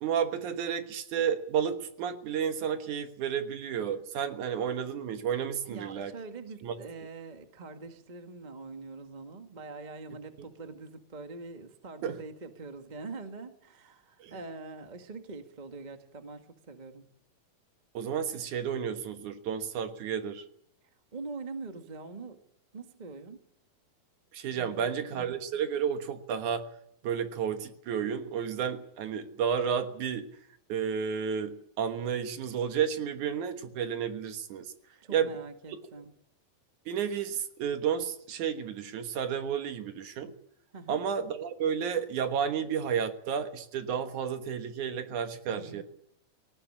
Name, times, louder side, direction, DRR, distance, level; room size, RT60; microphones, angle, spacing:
voice 1, 0.0-6.1 6.6-6.7 12.0-12.2 14.2-14.3 17.9-20.4 24.3-26.6 27.0-30.3 30.7-34.7 35.1-35.3 36.9-40.3 40.9-45.8, right 7 dB, 65° right, 8 dB, 2.7 m, -31 dB
voice 2, 5.7-17.0 21.1-22.4 22.7-23.4 24.5-25.3 35.0-36.1 40.7-41.0 45.5-45.8, right 3 dB, 30° right, 7 dB, 0.8 m, -44 dB
18.0 x 18.0 x 9.9 m, 0.73 s
omnidirectional pair, 3.9 m